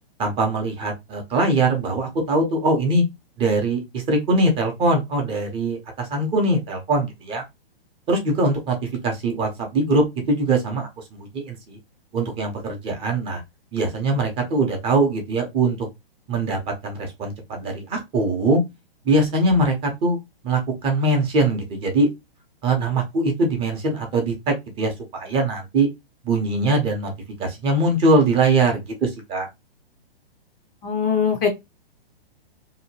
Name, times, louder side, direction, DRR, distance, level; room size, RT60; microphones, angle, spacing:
voice 1, 0.2-3.0 3.4-7.4 8.1-8.8 9.0-11.8 12.1-13.4 13.7-15.9 16.3-18.6 19.0-20.2 20.4-22.1 22.6-25.9 26.2-27.1 27.4-29.5, right 2 dB, 20° right, 0.6 m, -22 dB
voice 2, 30.8-31.5, left 7 dB, 25° left, 0.5 m, -21 dB
2.7 x 2.1 x 2.8 m
hypercardioid pair, 130°, 30 cm